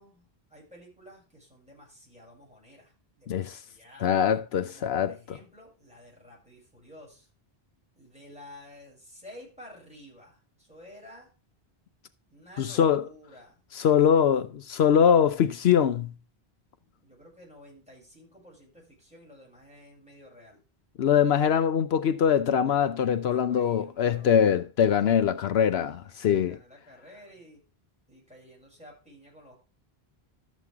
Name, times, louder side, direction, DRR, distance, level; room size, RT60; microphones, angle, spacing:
voice 1, 0.0-4.2 4.6-7.3 8.0-11.3 12.3-14.0 16.8-20.6 23.1-24.6 25.0-25.2 25.5-27.6 28.1-29.6, left 1 dB, 5° right, 7.1 m, -52 dB
voice 2, 3.3-3.6 4.0-5.4 12.6-13.0 13.7-16.1 21.0-26.6, left 8 dB, 80° left, 0.9 m, -23 dB
13.0 x 7.4 x 3.5 m
omnidirectional pair, 1.1 m